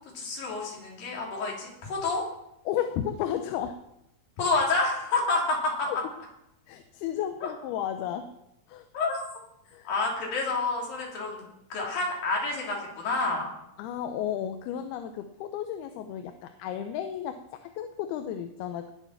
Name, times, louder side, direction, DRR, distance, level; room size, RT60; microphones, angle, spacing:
voice 1, 0.1-2.2 4.4-5.9 7.4-7.5 8.9-9.2 9.8-13.5, left 3 dB, 65° left, -2 dB, 4.8 m, -29 dB
voice 2, 2.7-3.8 5.9-6.0 6.7-8.4 8.7-8.9 9.7-9.9 13.8-18.9, left 10 dB, 85° left, 8 dB, 2.7 m, -33 dB
19.0 x 6.9 x 5.9 m, 0.82 s
omnidirectional pair, 4.5 m